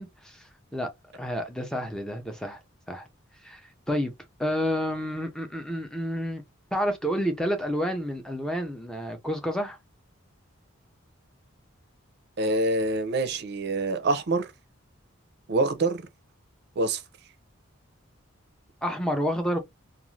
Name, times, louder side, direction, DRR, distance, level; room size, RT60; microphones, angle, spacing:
voice 1, 0.0-2.6 2.9-3.1 3.4-4.1 4.4-6.4 6.7-9.8 18.8-19.6, equal, 5° left, 0.5 m, -30 dB
voice 2, 12.4-14.5 15.5-16.0 16.8-17.0, right 2 dB, 50° right, 0.5 m, -25 dB
2.5 x 2.4 x 3.1 m
head